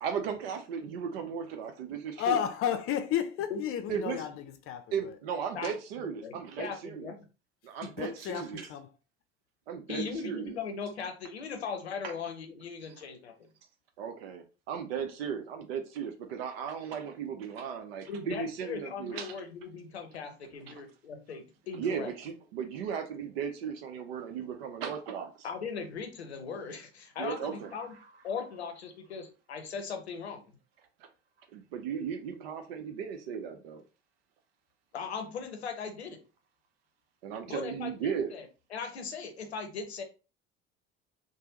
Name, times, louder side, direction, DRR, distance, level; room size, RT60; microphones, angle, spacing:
voice 1, 0.0-2.4 3.9-4.2 4.9-7.1 7.6-8.7 9.7-10.5 14.0-19.3 21.7-25.3 27.2-27.7 31.5-33.8 37.2-38.3, right 7 dB, 70° right, 0.7 m, -36 dB
voice 2, 2.2-5.1 7.8-8.9, left 9 dB, 45° left, 0.5 m, -32 dB
voice 3, 6.0-7.3 9.9-13.3 18.1-22.1 25.4-28.0 28.2-30.4 34.9-36.2 37.5-40.0, left 5 dB, 85° left, 0.7 m, -39 dB
3.3 x 2.1 x 2.9 m
figure-of-eight pair, 65°, 31 cm